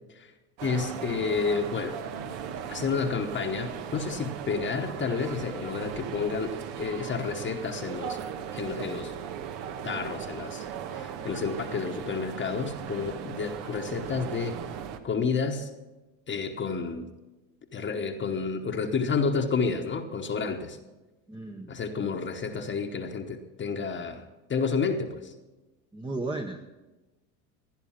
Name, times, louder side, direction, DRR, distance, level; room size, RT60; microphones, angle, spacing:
voice 1, 0.6-2.0 2.7-8.2 8.5-9.1 9.8-10.7 10.9-14.6 15.0-15.7 16.3-17.1 17.7-20.8 21.7-24.2 24.5-25.3, left 5 dB, 25° left, 3 dB, 1.1 m, -30 dB
sound 1, 0.6-15.0, right 8 dB, 70° right, 1.3 m, -38 dB
voice 2, 21.3-21.8 25.9-26.9, right 2 dB, 10° right, 3 dB, 0.8 m, -35 dB
16.5 x 10.5 x 5.8 m, 1.1 s
supercardioid pair, 110°, 42 cm